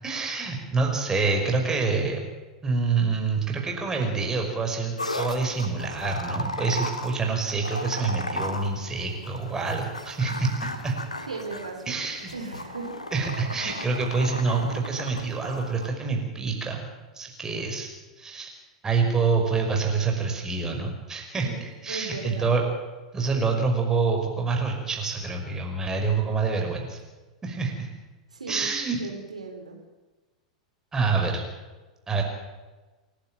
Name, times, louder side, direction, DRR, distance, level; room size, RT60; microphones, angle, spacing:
voice 1, 0.0-2.2 2.6-10.9 11.9-12.3 13.1-16.9 17.2-17.9 18.2-18.5 18.8-22.6 23.1-27.0 27.4-27.9 28.5-29.0 30.9-31.4 32.1-32.2, right 4 dB, 15° right, 2 dB, 5.7 m, -26 dB
sound 1, 5.0-15.9, left 1 dB, 85° left, 2.1 m, -36 dB
voice 2, 11.3-13.0 21.3-21.6 21.9-22.6 28.3-28.7 29.0-29.8, right 4 dB, 80° right, 2 dB, 3.8 m, -37 dB
28.5 x 12.0 x 9.0 m, 1.2 s
figure-of-eight pair, 90°, 4 cm